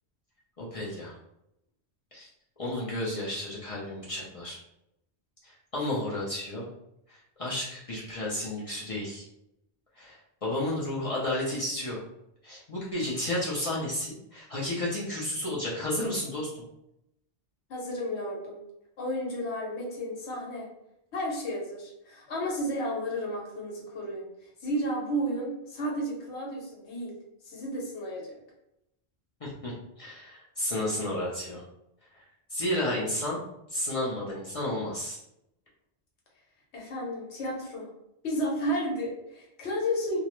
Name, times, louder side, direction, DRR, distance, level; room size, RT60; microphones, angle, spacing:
voice 1, 0.6-1.1 2.1-2.3 2.6-4.6 5.4-6.7 7.1-9.3 10.0-12.0 12.4-16.6 29.4-29.7 30.0-31.6 32.5-33.4 33.7-35.2, left 1 dB, 40° left, -6 dB, 0.5 m, -32 dB
voice 2, 17.7-18.6 19.0-20.7 21.1-24.2 24.6-27.1 27.4-28.3 36.7-37.9 38.2-40.2, equal, 85° left, -3 dB, 1.1 m, -32 dB
2.3 x 2.0 x 2.9 m, 0.84 s
omnidirectional pair, 1.1 m